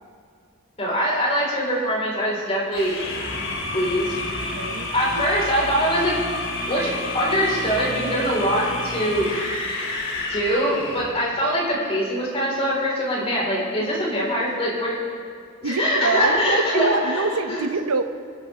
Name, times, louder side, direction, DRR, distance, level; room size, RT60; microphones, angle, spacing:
voice 1, 0.8-3.0 3.7-4.5 4.9-6.1 6.7-9.3 10.3-15.0 15.6-17.7, equal, 30° left, -4 dB, 4.8 m, -23 dB
sound 1, 2.7-11.2, left 2 dB, 65° left, 2.7 m, -30 dB
voice 2, 4.5-4.9 13.8-13.9 15.6-18.0, right 4 dB, 90° right, 9 dB, 0.8 m, -26 dB
25.0 x 12.0 x 3.7 m, 2.3 s
head